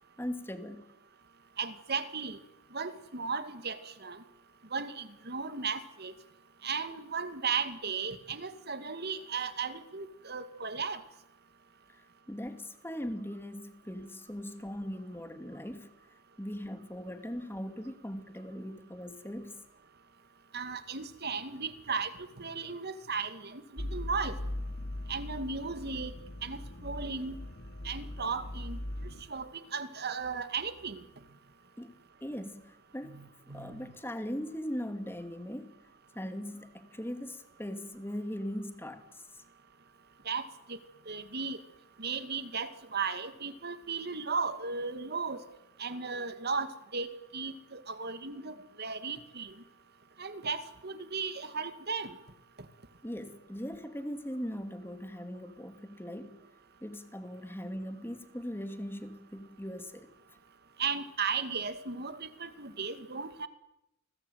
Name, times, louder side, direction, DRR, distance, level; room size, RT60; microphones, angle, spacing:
voice 1, 0.2-0.8 12.0-15.9 16.4-19.6 31.8-31.9 32.2-33.2 33.5-35.7 36.1-39.2 53.0-56.4 56.8-60.1, equal, 10° left, 8 dB, 2.6 m, -40 dB
voice 2, 1.6-2.4 2.7-4.2 4.7-6.1 6.6-11.0 20.5-24.3 25.1-26.1 26.4-27.4 27.8-28.8 29.3-31.0 33.1-33.9 40.3-40.8 41.1-41.6 42.0-45.4 45.8-49.5 50.2-52.1 60.8-63.5, right 5 dB, 50° right, 11 dB, 2.2 m, -36 dB
sound 1, 23.8-29.2, left 1 dB, 55° left, 2.7 m, -40 dB
29.5 x 21.0 x 9.4 m, 0.88 s
head